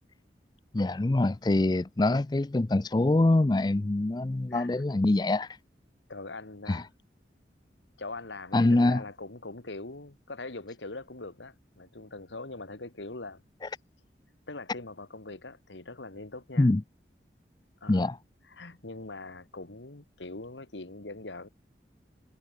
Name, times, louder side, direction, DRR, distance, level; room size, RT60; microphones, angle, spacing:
voice 1, 0.7-5.5 6.7-6.8 8.5-9.0 16.6-16.8 17.9-18.2, left 2 dB, 25° left, 0.4 m, -24 dB
voice 2, 4.5-4.8 6.1-6.9 8.0-13.4 14.5-16.7 17.8-18.2 18.4-21.5, left 2 dB, 90° left, 2.0 m, -42 dB
head